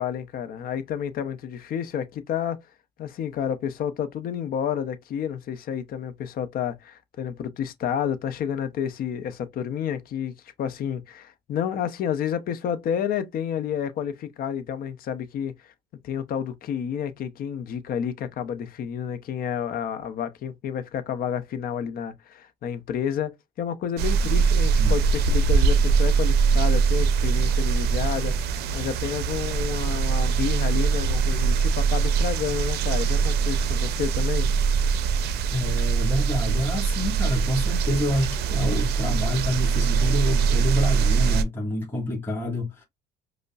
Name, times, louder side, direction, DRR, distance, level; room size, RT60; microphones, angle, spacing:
voice 1, 0.0-2.6 3.0-15.7 16.0-34.5, left 8 dB, 60° left, 0.7 m, -30 dB
sound 1, 24.0-41.4, right 5 dB, 75° right, 0.5 m, -22 dB
voice 2, 35.5-42.8, left 1 dB, 10° left, 1.6 m, -28 dB
5.0 x 2.1 x 2.3 m
cardioid pair, 110°, 17 cm